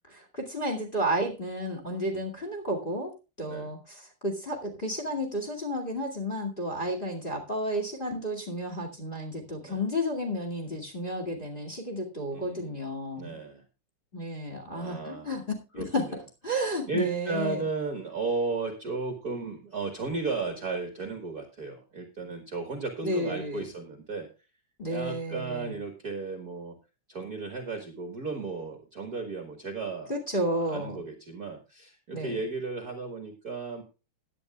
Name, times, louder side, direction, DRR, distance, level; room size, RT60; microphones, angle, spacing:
voice 1, 0.1-13.4 14.1-16.1 16.4-17.7 23.0-23.7 24.8-25.7 30.1-31.0 32.1-32.4, equal, 20° left, 4 dB, 2.1 m, -32 dB
voice 2, 12.3-12.8 13.2-13.6 14.7-15.3 15.8-16.2 16.9-24.3 24.9-26.8 27.1-30.1 30.6-33.8, right 3 dB, 40° right, 5 dB, 1.5 m, -34 dB
16.5 x 10.0 x 2.3 m, 0.30 s
omnidirectional pair, 3.3 m